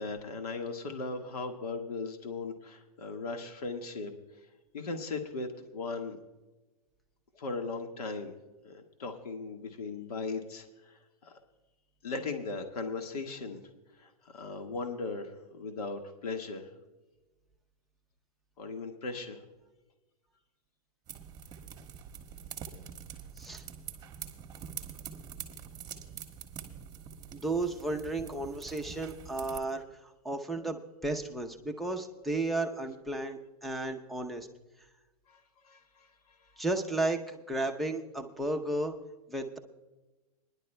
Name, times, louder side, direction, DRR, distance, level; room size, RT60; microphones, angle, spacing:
voice 1, 0.0-4.1 4.7-6.2 7.3-8.3 8.6-11.3 12.0-13.6 14.0-16.7 18.6-19.4 35.3-36.5, left 3 dB, 80° left, 4 dB, 1.6 m, -38 dB
sound 1, 21.1-29.6, right 8 dB, 20° right, 1.3 m, -45 dB
voice 2, 27.3-34.5 36.6-39.0 39.3-39.6, right 2 dB, ahead, 7 dB, 0.7 m, -33 dB
25.5 x 10.5 x 2.2 m, 1.1 s
hypercardioid pair, 140°, 19 cm